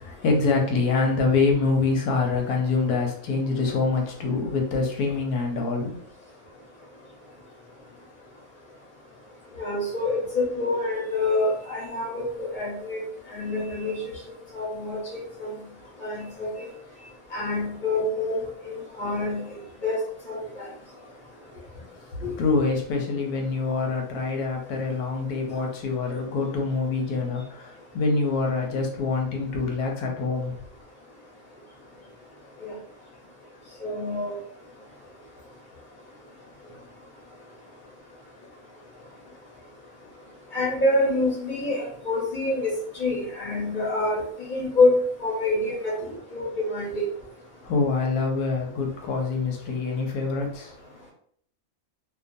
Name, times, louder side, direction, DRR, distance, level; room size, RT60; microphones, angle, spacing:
voice 1, 0.0-5.9 22.4-30.5 47.6-50.7, left 4 dB, 85° left, 1 dB, 1.1 m, -25 dB
voice 2, 9.5-13.0 13.3-14.0 14.5-15.0 16.0-16.7 17.3-19.4 19.8-20.0 20.3-20.6 22.2-22.3 32.6-32.7 33.8-34.3 40.5-44.2 44.5-44.9 45.2-47.0, left 2 dB, 40° left, -4 dB, 0.9 m, -26 dB
2.5 x 2.3 x 2.6 m, 0.63 s
omnidirectional pair, 1.6 m